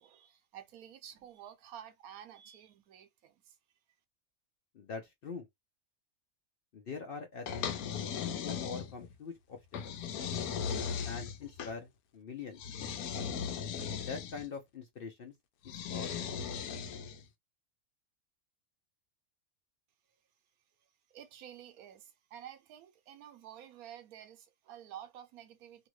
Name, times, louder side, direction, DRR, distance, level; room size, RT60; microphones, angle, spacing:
voice 1, 0.0-3.6 21.1-25.9, right 10 dB, 80° right, 1.1 m, -51 dB
voice 2, 4.7-5.5 6.7-7.7 8.4-9.6 9.8-10.0 11.0-12.6 14.0-15.3 15.6-16.3, left 5 dB, 60° left, 0.6 m, -43 dB
sound 1, 7.5-9.1 9.7-11.7 12.6-14.5 15.6-17.2, left 7 dB, 85° left, 1.1 m, -37 dB
2.7 x 2.5 x 3.0 m
omnidirectional pair, 1.5 m